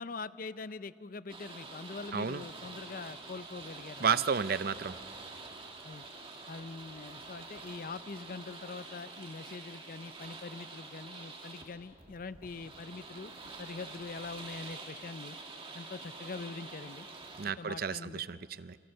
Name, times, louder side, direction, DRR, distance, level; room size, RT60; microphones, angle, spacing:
voice 1, 0.0-4.2 5.8-6.1 6.5-15.4 15.7-17.1 17.6-18.4, left 4 dB, 50° left, 15 dB, 0.6 m, -43 dB
sound 1, 1.3-17.5, right 3 dB, 30° right, 2.4 m, -47 dB
voice 2, 2.1-2.4 4.0-5.0 17.4-18.8, right 6 dB, 55° right, 15 dB, 0.6 m, -32 dB
28.0 x 23.5 x 6.6 m, 2.3 s
head